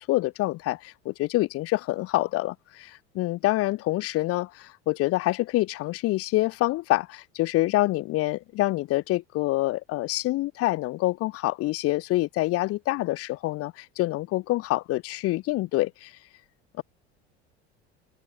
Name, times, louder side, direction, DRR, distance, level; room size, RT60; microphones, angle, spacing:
voice 1, 0.1-16.1, left 18 dB, 45° left, 0.6 m, -26 dB
hypercardioid pair, 80°, 33 cm